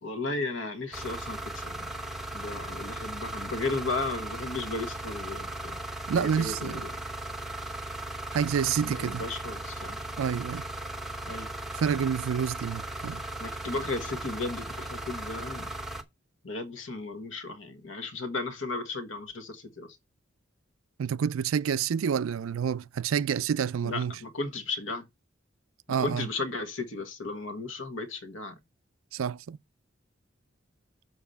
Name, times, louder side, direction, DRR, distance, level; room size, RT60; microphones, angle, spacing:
voice 1, 0.0-1.9 2.3-5.8 6.1-7.0 8.8-10.1 11.2-11.5 13.4-15.7 16.4-20.0 23.8-25.1 26.0-28.5, left 3 dB, 70° left, 1.5 m, -35 dB
sound 1, 0.9-16.0, right 1 dB, ahead, 0.9 m, -37 dB
voice 2, 6.1-6.8 8.3-9.2 10.2-10.6 11.7-13.2 21.0-24.1 25.9-26.3 29.1-29.6, right 7 dB, 80° right, 0.4 m, -28 dB
7.1 x 4.8 x 5.5 m
head